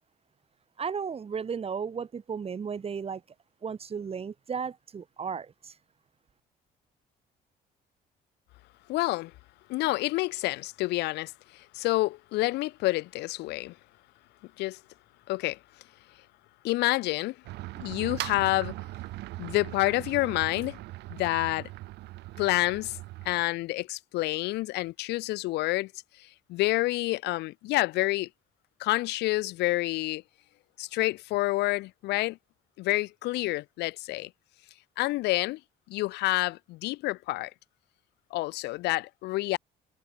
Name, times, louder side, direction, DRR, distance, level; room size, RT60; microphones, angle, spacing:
voice 1, 0.8-3.2 3.6-5.8, right 6 dB, 35° right, 5.7 m, -34 dB
voice 2, 8.9-9.3 9.7-13.7 14.6-14.8 15.3-15.6 16.6-17.4 17.8-18.8 19.4-20.8 21.1-21.7 22.4-23.0 23.2-25.9 26.5-28.3 28.8-30.2 30.8-32.4 32.8-34.3 35.0-35.6 35.9-37.5 38.3-39.6, left 19 dB, 85° left, 1.2 m, -28 dB
sound 1, 17.4-23.4, right 18 dB, 85° right, 4.0 m, -40 dB
cardioid pair, 110°, 17 cm